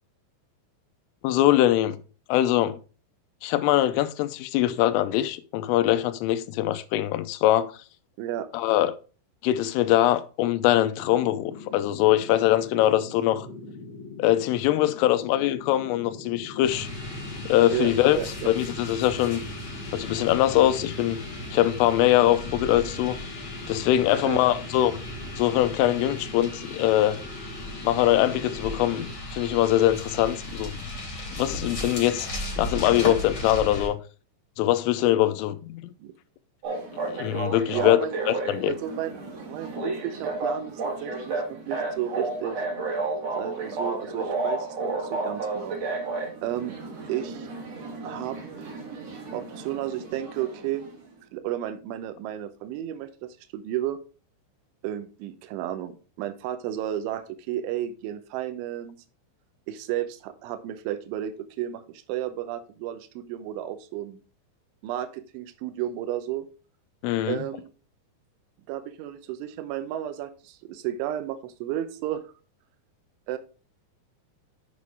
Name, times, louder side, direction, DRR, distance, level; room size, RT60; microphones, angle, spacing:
voice 1, 1.2-2.0 2.3-2.8 3.4-7.7 8.5-8.9 9.4-13.5 14.2-16.9 17.5-18.2 18.4-19.4 19.9-21.2 21.5-23.2 23.7-25.0 25.4-27.2 27.8-30.8 31.3-32.3 32.6-34.0 34.6-35.9 37.1-38.0 38.3-38.7 67.0-67.5, left 13 dB, 85° left, 3.2 m, -22 dB
voice 2, 8.2-8.5 17.7-18.3 24.1-24.4 36.0-36.1 37.7-38.2 38.7-39.2 39.5-42.6 43.4-45.8 46.4-46.8 47.1-47.5 48.0-48.4 49.3-50.8 51.3-54.0 54.8-59.0 59.7-64.2 64.8-66.5 67.3-67.7 68.7-72.2 73.3-73.4, right 12 dB, 80° right, 3.1 m, -32 dB
sound 1, 10.9-29.2, left 3 dB, 65° left, 1.7 m, -42 dB
sound 2, 16.6-33.9, left 1 dB, 30° left, 3.6 m, -36 dB
sound 3, 36.6-51.0, right 3 dB, 45° right, 2.4 m, -32 dB
8.4 x 6.5 x 3.6 m
omnidirectional pair, 5.7 m